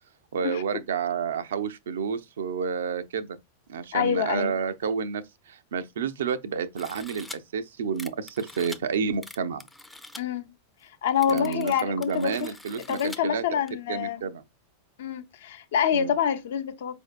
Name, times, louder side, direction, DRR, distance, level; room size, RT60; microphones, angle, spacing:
voice 1, 0.3-3.4 3.7-9.6 11.3-13.6 13.9-14.4 15.9-16.1, right 6 dB, 75° right, 0.4 m, -30 dB
voice 2, 3.9-4.5 10.2-10.5 11.0-12.5 12.9-14.2 15.0-17.0, left 8 dB, 65° left, 0.5 m, -26 dB
sound 1, 6.8-7.4 8.0-8.8 9.2-10.2 10.8-10.9 11.1-13.2 13.7-13.8, left 1 dB, 5° left, 0.3 m, -44 dB
4.4 x 2.6 x 2.4 m
hypercardioid pair, 95°, 0 cm